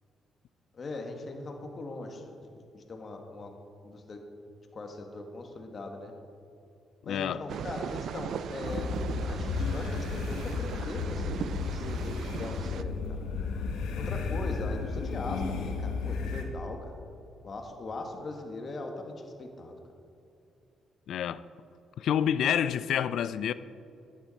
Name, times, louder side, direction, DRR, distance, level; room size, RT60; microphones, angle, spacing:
voice 1, 0.7-2.5 2.7-3.5 3.8-4.2 4.7-6.1 7.0-13.2 13.9-16.9 17.4-19.8, left 2 dB, 40° left, 1.6 m, -40 dB
voice 2, 7.1-7.4 21.1-21.4 22.0-23.5, left 9 dB, 70° left, 0.4 m, -28 dB
sound 1, 7.5-12.8, right 8 dB, 70° right, 0.4 m, -38 dB
sound 2, 8.6-16.4, left 4 dB, 90° left, 1.2 m, -33 dB
11.0 x 10.5 x 4.2 m
cardioid pair, 90°, 0 cm